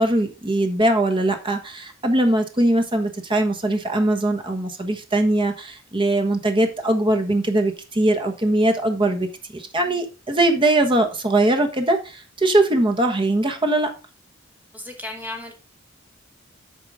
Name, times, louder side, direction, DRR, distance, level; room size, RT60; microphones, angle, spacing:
voice 1, 0.0-9.3 9.5-13.9, right 1 dB, 25° right, 6 dB, 1.3 m, -21 dB
voice 2, 14.7-15.5, left 2 dB, 10° right, 2 dB, 2.0 m, -34 dB
8.5 x 4.9 x 5.0 m, 0.32 s
head